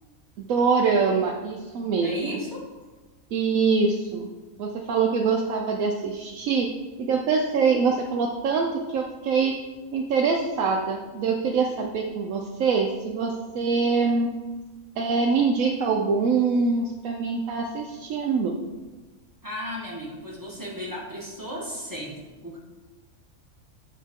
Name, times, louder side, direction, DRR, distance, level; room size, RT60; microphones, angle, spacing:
voice 1, 0.4-2.2 3.3-4.3 4.6-6.7 7.0-9.5 9.9-14.3 15.0-18.6, right 5 dB, 75° right, 0 dB, 1.1 m, -24 dB
voice 2, 2.0-2.7 19.4-22.6, equal, 15° right, -4 dB, 1.3 m, -35 dB
9.3 x 4.7 x 3.6 m, 1.2 s
omnidirectional pair, 1.5 m